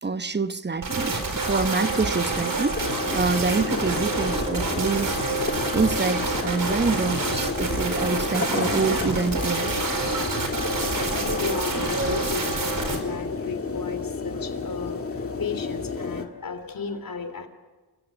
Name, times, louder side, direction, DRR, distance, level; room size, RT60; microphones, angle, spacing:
voice 1, 0.0-5.2 5.7-9.7 12.0-12.2, right 4 dB, 25° right, 0.9 m, -26 dB
sound 1, 0.8-13.0, right 3 dB, 50° right, 4.6 m, -27 dB
sound 2, 2.7-16.3, left 4 dB, 35° left, 1.9 m, -31 dB
voice 2, 11.1-17.5, left 5 dB, 55° left, 3.4 m, -34 dB
28.5 x 16.0 x 9.9 m
cardioid pair, 85°, 41 cm